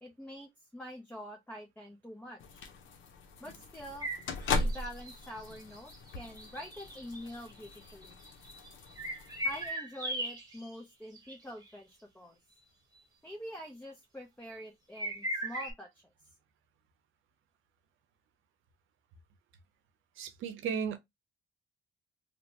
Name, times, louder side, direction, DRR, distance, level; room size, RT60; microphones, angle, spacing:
voice 1, 0.0-2.7 3.4-4.1 4.5-8.2 9.4-12.4 13.2-16.0, equal, 10° left, 0.6 m, -46 dB
sound 1, 2.4-9.7, left 3 dB, 75° left, 0.7 m, -39 dB
sound 2, 4.0-10.8 11.1-11.3 11.6-11.7 13.0-13.1 15.0-15.7, right 1 dB, 20° right, 1.0 m, -38 dB
voice 2, 20.2-21.0, right 7 dB, 80° right, 0.6 m, -34 dB
2.8 x 2.1 x 2.8 m
cardioid pair, 90°, 20 cm